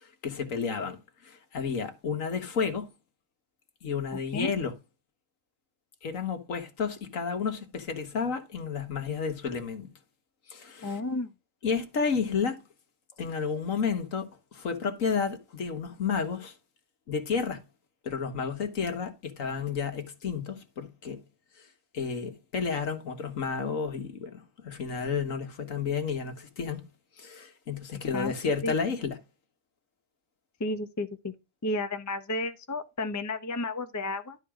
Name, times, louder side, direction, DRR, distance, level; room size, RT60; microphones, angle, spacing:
voice 1, 0.0-2.9 3.8-4.7 6.0-9.9 10.5-11.0 11.6-12.6 13.2-16.5 17.1-17.6 18.0-21.2 21.6-21.7 21.9-26.8 27.2-29.2, left 5 dB, 60° left, 1.8 m, -31 dB
voice 2, 10.8-11.3 28.1-28.3 28.6-28.7 30.6-31.3 31.6-34.4, left 2 dB, 20° left, 0.6 m, -32 dB
12.0 x 4.6 x 4.9 m
omnidirectional pair, 1.6 m